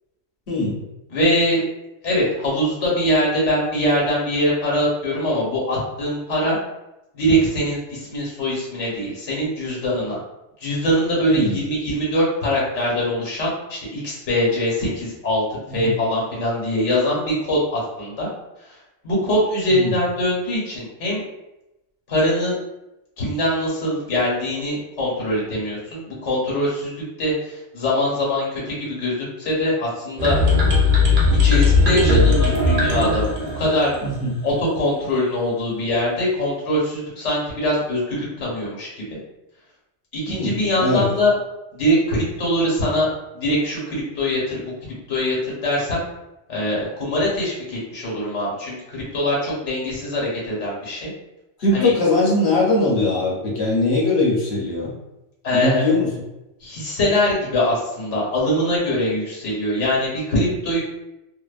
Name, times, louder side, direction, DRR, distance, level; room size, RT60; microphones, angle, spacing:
voice 1, 0.5-0.8 11.2-11.6 15.7-16.0 19.7-19.9 34.0-34.4 40.3-41.1 51.6-54.9 55.5-56.1, left 2 dB, 65° left, -4 dB, 1.1 m, -21 dB
voice 2, 1.1-1.6 2.0-6.6 7.1-10.2 10.6-18.3 19.0-21.2 22.1-22.6 23.2-30.4 31.3-33.9 34.4-39.2 40.1-41.3 41.7-43.1 43.3-44.7 45.1-46.0 46.5-51.1 51.7-51.9 55.4-55.9 56.6-60.8, left 1 dB, 80° left, -5 dB, 1.3 m, -22 dB
sound 1, 30.2-34.1, left 3 dB, 50° right, 0.7 m, -17 dB
2.7 x 2.1 x 2.3 m, 0.92 s
omnidirectional pair, 1.2 m